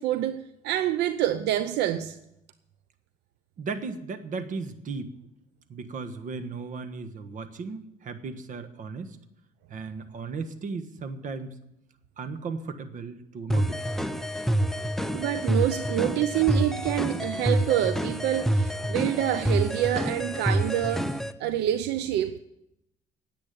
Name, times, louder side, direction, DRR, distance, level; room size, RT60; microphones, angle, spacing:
voice 1, 0.0-2.2 15.1-22.4, right 12 dB, 85° right, 0.7 m, -27 dB
voice 2, 3.6-5.2 5.7-9.2 9.7-11.5 12.2-13.8, right 4 dB, 50° right, 1.4 m, -36 dB
sound 1, 13.5-21.3, right 1 dB, ahead, 0.6 m, -27 dB
10.5 x 8.5 x 10.0 m
cardioid pair, 110°, 17 cm